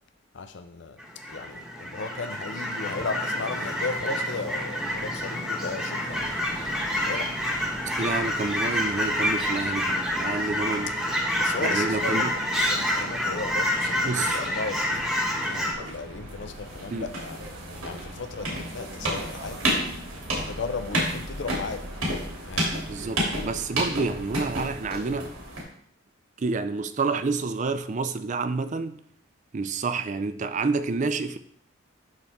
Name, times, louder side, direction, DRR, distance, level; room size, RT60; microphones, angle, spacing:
voice 1, 0.3-1.0 1.3-6.2 7.0-7.3 11.4-15.1 15.5-17.5 17.8-20.0 20.5-21.8 22.4-22.7, left 4 dB, 55° left, 0.5 m, -35 dB
Fowl / Chirp tweet, 1.0-15.7, left 1 dB, ahead, 1.1 m, -28 dB
sound 1, 6.1-23.3, right 1 dB, 65° right, 1.2 m, -45 dB
voice 2, 8.0-11.0 11.6-12.3 14.0-14.4 16.9-17.1 22.9-25.4 26.4-29.0 29.5-31.4, right 4 dB, 35° right, 0.4 m, -29 dB
sound 2, 15.7-25.6, right 1 dB, 90° right, 2.7 m, -31 dB
11.5 x 4.0 x 3.5 m
head